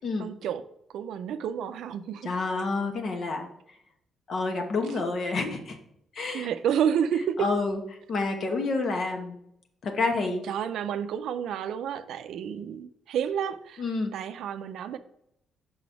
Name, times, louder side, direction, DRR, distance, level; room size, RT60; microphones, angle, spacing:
voice 1, 0.2-0.6 0.9-2.6 4.9-5.0 6.3-7.5 10.4-15.0, right 8 dB, 75° right, 11 dB, 0.4 m, -30 dB
voice 2, 2.2-3.5 4.3-5.8 6.1-6.5 7.4-7.8 8.1-9.4 9.8-10.4 13.8-14.1, left 3 dB, 55° left, 4 dB, 1.1 m, -28 dB
5.6 x 4.1 x 4.6 m, 0.74 s
cardioid pair, 90°, 0 cm